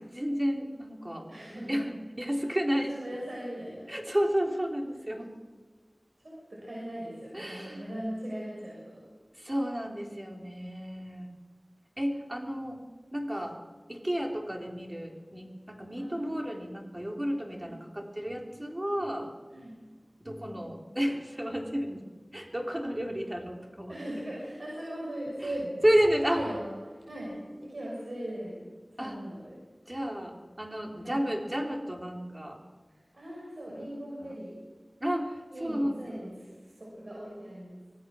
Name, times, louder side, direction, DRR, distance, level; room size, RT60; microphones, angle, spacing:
voice 1, 0.0-1.3 1.7-2.9 3.9-5.3 7.3-7.8 9.4-11.3 12.0-12.8 13.1-13.5 13.9-19.3 20.2-22.0 22.3-24.0 25.4-25.5 25.8-26.4 29.0-29.2 29.9-32.6 33.7-33.9 34.2-34.3 35.0-36.0, equal, 25° right, 1 dB, 3.6 m, -31 dB
voice 2, 1.3-2.0 2.7-3.9 6.2-9.0 12.8-12.9 16.0-16.3 17.6-17.8 19.5-19.8 23.9-25.8 26.3-29.6 31.0-31.3 32.9-34.6 35.5-37.8, right 1 dB, 75° right, -4 dB, 6.5 m, -39 dB
25.0 x 17.5 x 6.3 m, 1.4 s
wide cardioid pair, 50°, 0 cm